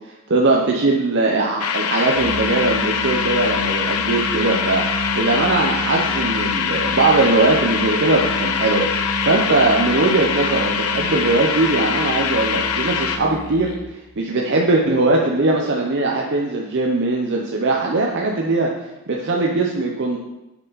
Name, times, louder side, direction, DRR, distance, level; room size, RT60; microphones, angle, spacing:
voice 1, 0.3-13.7 14.2-18.7 19.1-20.2, right 2 dB, 55° right, -1 dB, 0.7 m, -20 dB
sound 1, 1.6-13.2, left 7 dB, 80° left, 0.6 m, -23 dB
Musical instrument, 2.1-13.9, equal, 55° left, 1.1 m, -31 dB
6.9 x 6.8 x 4.0 m, 0.99 s
head